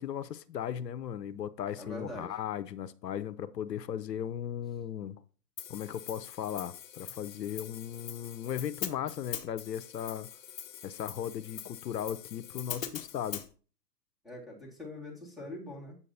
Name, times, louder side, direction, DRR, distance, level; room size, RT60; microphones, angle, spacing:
voice 1, 0.0-5.2 5.7-10.3 10.8-13.4, left 9 dB, 85° left, 14 dB, 0.7 m, -37 dB
voice 2, 1.8-2.3 14.2-16.0, left 1 dB, ahead, -5 dB, 2.0 m, -43 dB
Hi-hat, 5.6-13.5, left 9 dB, 55° left, 1.0 m, -43 dB
8.3 x 7.1 x 2.7 m, 0.39 s
hypercardioid pair, 140°, 48 cm